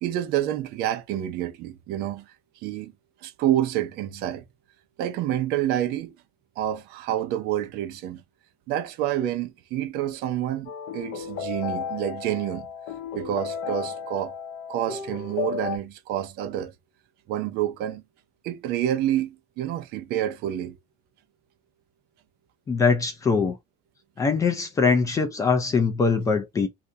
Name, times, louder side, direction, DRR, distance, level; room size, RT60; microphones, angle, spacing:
voice 1, 0.0-2.9 3.2-4.4 5.0-6.2 6.6-8.2 8.7-12.7 13.1-14.4 14.7-16.7 17.3-18.0 18.4-20.8, right 12 dB, 55° right, 0.6 m, -28 dB
sound 1, 10.7-15.8, left 7 dB, 60° left, 0.6 m, -33 dB
voice 2, 22.7-23.6 24.2-26.7, left 5 dB, 15° left, 0.4 m, -22 dB
2.7 x 2.6 x 3.1 m
cardioid pair, 180°, 19 cm